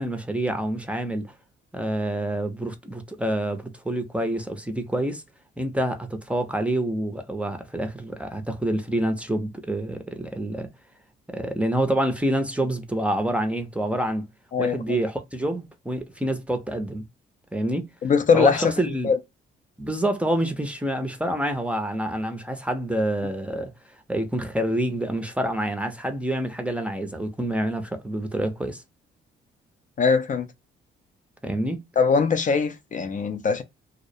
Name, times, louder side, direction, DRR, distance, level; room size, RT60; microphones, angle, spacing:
voice 1, 0.0-1.3 1.7-5.2 5.6-10.7 11.3-14.3 14.6-17.0 17.5-17.9 18.3-19.1 19.8-23.7 24.1-28.8 31.4-31.8, right 1 dB, 5° right, 0.5 m, -27 dB
voice 2, 14.5-15.0 18.0-18.7 19.0-19.2 30.0-30.5 32.0-33.6, left 5 dB, 40° left, 0.4 m, -21 dB
2.3 x 2.1 x 2.6 m
cardioid pair, 90°, 20 cm